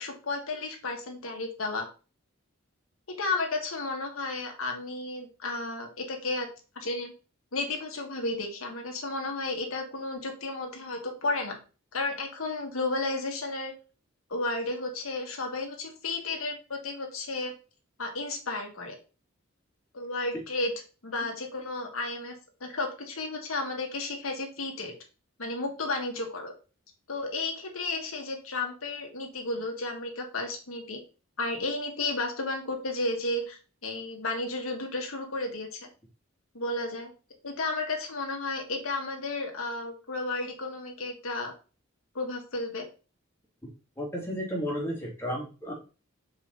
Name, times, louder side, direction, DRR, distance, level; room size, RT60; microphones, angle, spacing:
voice 1, 0.0-1.8 3.1-6.5 6.7-7.1 7.5-11.5 11.9-13.7 14.3-17.5 18.0-19.0 19.9-20.7 21.0-24.9 25.4-26.5 27.1-31.0 31.4-35.9 36.5-37.1 37.4-41.5 42.1-42.9, left 2 dB, 85° left, 3 dB, 1.5 m, -33 dB
voice 2, 44.0-45.7, equal, 15° left, -3 dB, 2.5 m, -33 dB
5.2 x 4.8 x 4.0 m, 0.34 s
head